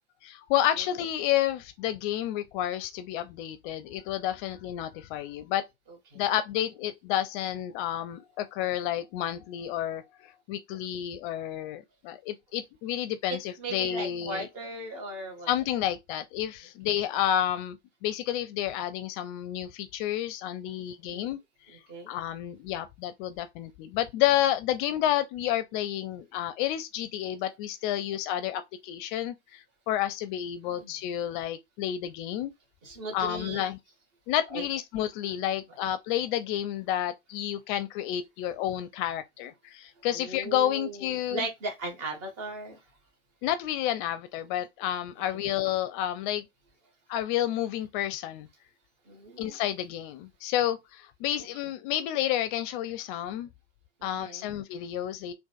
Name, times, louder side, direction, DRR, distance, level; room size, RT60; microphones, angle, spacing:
voice 1, 0.2-5.6 6.2-14.5 15.5-21.4 21.7-21.8 22.1-32.5 33.1-33.8 34.3-41.4 43.4-46.5 47.1-48.5 49.4-53.5 54.0-55.3, left 12 dB, 45° left, 0.5 m, -30 dB
voice 2, 13.3-15.5 20.7-21.3 21.7-22.1 30.6-30.9 32.8-33.7 34.5-34.7 40.1-42.8 49.0-49.6 54.1-54.5, right 2 dB, 45° right, 1.7 m, -38 dB
3.8 x 2.4 x 2.3 m
hypercardioid pair, 100°, 35 cm